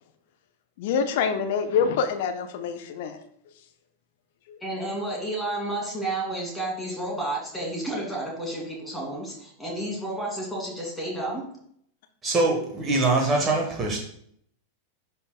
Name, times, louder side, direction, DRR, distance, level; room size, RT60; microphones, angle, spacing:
voice 1, 0.8-3.2 4.5-4.6, left 6 dB, 50° left, 7 dB, 0.8 m, -26 dB
voice 2, 4.6-11.4, right 1 dB, 5° left, -3 dB, 2.7 m, -31 dB
voice 3, 12.2-14.0, right 2 dB, 20° right, 0 dB, 1.2 m, -23 dB
11.0 x 4.3 x 2.2 m, 0.67 s
figure-of-eight pair, 90°, 0 cm